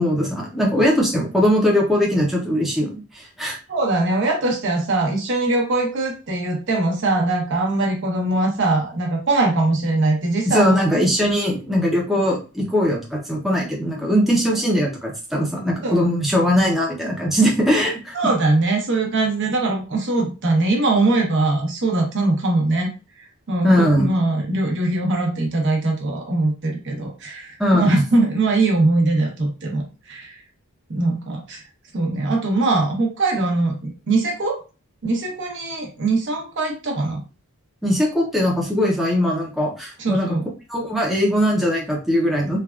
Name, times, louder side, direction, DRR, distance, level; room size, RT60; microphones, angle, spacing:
voice 1, 0.0-3.6 10.5-18.2 23.6-24.1 27.6-28.0 37.8-40.3 40.7-42.6, equal, ahead, -3 dB, 0.5 m, -20 dB
voice 2, 3.7-10.8 15.8-16.1 18.1-22.9 23.5-29.8 30.1-30.4 30.9-31.6 31.9-34.6 35.0-37.2 40.0-40.4, right 2 dB, 55° right, 1 dB, 0.8 m, -21 dB
3.3 x 2.2 x 2.3 m, 0.32 s
head